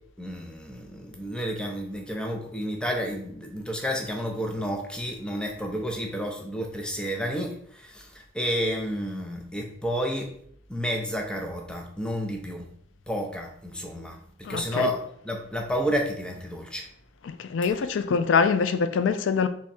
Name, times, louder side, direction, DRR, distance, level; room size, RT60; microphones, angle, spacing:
voice 1, 0.2-10.3 10.7-12.7 13.1-15.0 15.2-16.9, equal, 5° left, 0.5 m, -31 dB
voice 2, 14.5-14.9 17.2-19.5, left 5 dB, 70° left, 0.3 m, -24 dB
3.5 x 3.1 x 4.2 m
head